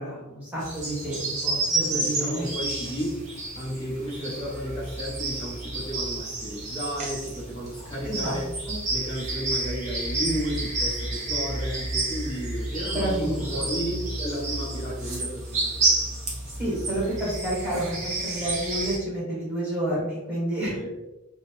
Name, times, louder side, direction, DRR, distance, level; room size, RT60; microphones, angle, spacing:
voice 1, 0.0-2.5 8.0-8.8 12.8-13.7 16.4-20.8, right 1 dB, 5° right, -8 dB, 1.2 m, -30 dB
sound 1, 0.6-19.0, right 2 dB, 35° right, 0.6 m, -30 dB
voice 2, 1.9-8.5 8.9-15.9 20.7-20.9, equal, 20° left, -6 dB, 0.6 m, -33 dB
2.7 x 2.0 x 2.9 m, 1.0 s
head